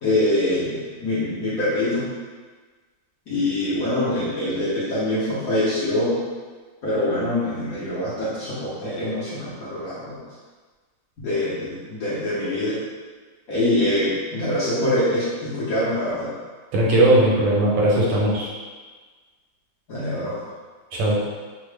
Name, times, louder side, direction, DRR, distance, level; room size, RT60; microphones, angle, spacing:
voice 1, 0.0-2.1 3.3-6.2 6.8-10.2 11.2-12.8 13.5-16.3 19.9-20.3, left 1 dB, 60° left, -10 dB, 1.0 m, -24 dB
voice 2, 16.7-18.5 20.9-21.2, right 1 dB, 90° right, -5 dB, 1.7 m, -18 dB
3.8 x 2.1 x 3.2 m, 1.4 s
omnidirectional pair, 2.3 m